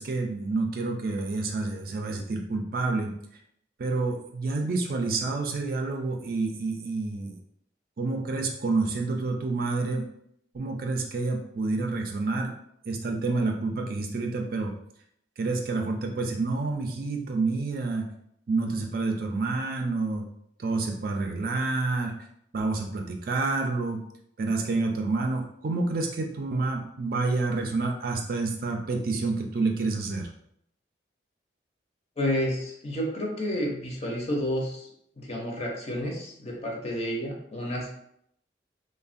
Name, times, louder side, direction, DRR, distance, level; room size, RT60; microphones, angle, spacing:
voice 1, 0.0-3.1 3.8-7.4 8.0-10.0 10.5-12.5 12.9-14.7 15.4-18.0 18.5-20.2 20.6-22.1 22.5-24.0 24.4-30.3, right 3 dB, 50° right, 2 dB, 0.4 m, -28 dB
voice 2, 32.2-34.9 35.2-37.9, equal, 35° left, -1 dB, 0.6 m, -30 dB
3.1 x 2.1 x 2.5 m, 0.72 s
head